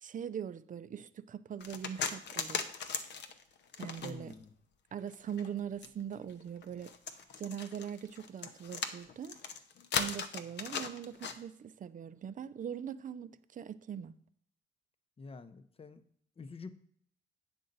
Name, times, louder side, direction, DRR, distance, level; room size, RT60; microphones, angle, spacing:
voice 1, 0.0-2.7 3.8-4.4 4.9-6.9 7.4-9.4 10.0-14.1, right 8 dB, 40° right, 0.5 m, -41 dB
sound 1, 1.6-4.4 5.0-11.4, left 6 dB, 60° left, 0.8 m, -38 dB
voice 2, 4.0-4.5 15.2-16.0 16.4-16.7, left 4 dB, 30° left, 0.7 m, -47 dB
8.8 x 6.3 x 4.0 m
cardioid pair, 90°, 20 cm